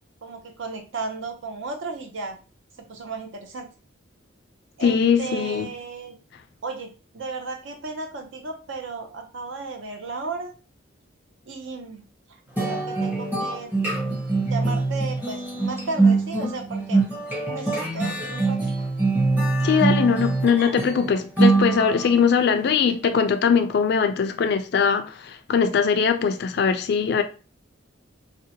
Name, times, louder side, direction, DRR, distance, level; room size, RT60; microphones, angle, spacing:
voice 1, 0.2-2.4 2.9-3.7 4.8-6.1 6.6-10.5 11.4-12.0 12.6-13.7 14.0-17.0 17.5-18.9, right 4 dB, 70° right, 0.6 m, -34 dB
voice 2, 4.8-5.7 19.6-27.2, left 6 dB, 55° left, 0.3 m, -21 dB
sound 1, 12.6-22.2, right 3 dB, 10° right, 0.7 m, -23 dB
2.6 x 2.1 x 2.7 m
head